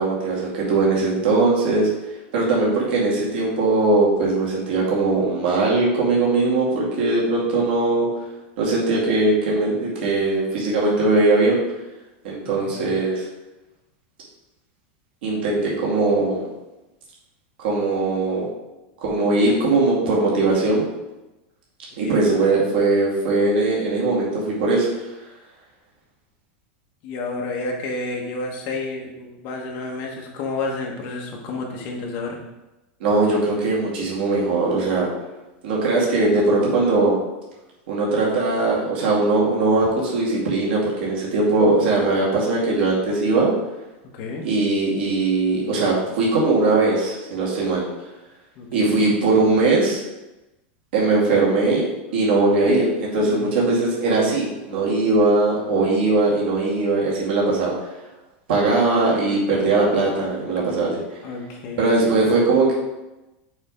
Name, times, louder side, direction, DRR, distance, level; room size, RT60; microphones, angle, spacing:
voice 1, 0.0-1.9 2.3-8.1 8.6-11.6 12.2-13.3 15.2-16.5 17.6-18.5 19.0-20.8 22.0-24.9 33.0-35.1 35.6-37.2 37.9-43.5 44.4-47.8 48.7-50.0 50.9-51.9 52.1-57.7 58.5-61.2 61.8-62.7, right 3 dB, 65° right, -5 dB, 2.3 m, -20 dB
voice 2, 12.4-13.0 22.0-22.5 27.0-32.4 44.1-44.5 48.5-49.1 53.2-53.8 61.2-62.2, left 3 dB, 35° left, 0 dB, 1.1 m, -31 dB
6.5 x 3.4 x 5.1 m, 1.0 s
supercardioid pair, 175°, 6 cm